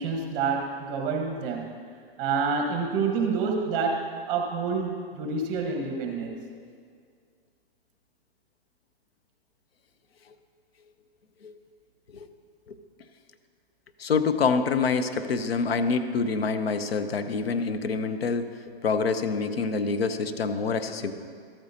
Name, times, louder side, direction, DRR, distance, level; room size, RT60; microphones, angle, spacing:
voice 1, 0.0-1.8 2.2-6.4, right 5 dB, 30° right, 2 dB, 1.3 m, -28 dB
voice 2, 14.0-18.5 18.8-21.1, left 5 dB, 80° left, 9 dB, 0.8 m, -26 dB
13.5 x 8.8 x 2.8 m, 2.1 s
hypercardioid pair, 135°, 30 cm